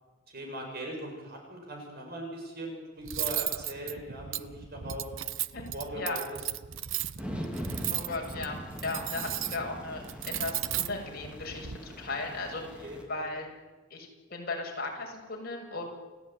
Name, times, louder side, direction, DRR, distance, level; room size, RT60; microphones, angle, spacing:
voice 1, 0.3-5.1 5.7-6.2 12.8-13.3, right 1 dB, 50° right, 1 dB, 7.6 m, -40 dB
Cutlery silverware, 3.0-11.8, right 12 dB, 70° right, 0.8 m, -36 dB
sound 1, 7.2-13.0, equal, 5° right, 3.6 m, -41 dB
voice 2, 7.9-12.8 13.1-13.5 13.9-15.8, left 3 dB, 50° left, 0 dB, 7.0 m, -36 dB
29.0 x 16.5 x 9.6 m, 1.2 s
head